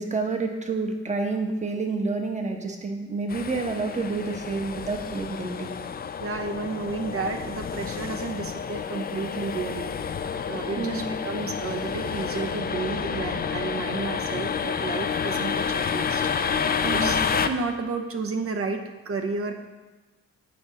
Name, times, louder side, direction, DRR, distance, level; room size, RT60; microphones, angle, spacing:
voice 1, 0.0-5.7 10.8-11.0 16.8-17.1, right 3 dB, 25° right, 4 dB, 1.1 m, -29 dB
sound 1, 3.3-17.5, left 6 dB, 30° left, 0.5 m, -29 dB
voice 2, 6.2-9.9 10.5-16.2 16.9-19.5, right 4 dB, 50° right, 5 dB, 1.0 m, -32 dB
8.8 x 4.9 x 4.1 m, 1.2 s
cardioid pair, 90°, 30 cm